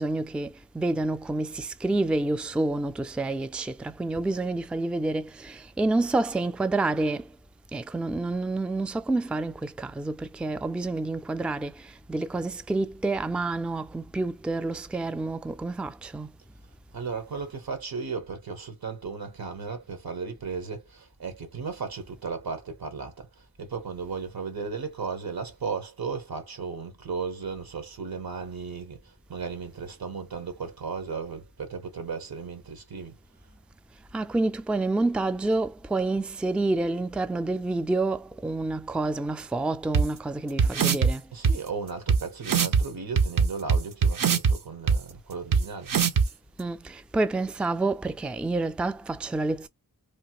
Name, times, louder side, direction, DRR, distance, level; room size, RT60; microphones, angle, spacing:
voice 1, 0.0-7.4 7.7-16.3 34.1-41.3 46.6-49.7, right 2 dB, 5° right, 0.3 m, -28 dB
voice 2, 16.9-33.2 41.3-45.9, right 5 dB, 85° right, 1.1 m, -35 dB
sound 1, 39.9-40.0 40.6-41.1 41.4-41.5 42.1-42.2 42.5-42.8 43.2-44.5 44.9-45.0 45.5-45.6 45.9-46.3, right 6 dB, 65° right, 0.6 m, -20 dB
3.1 x 2.2 x 2.9 m
wide cardioid pair, 55°, 36 cm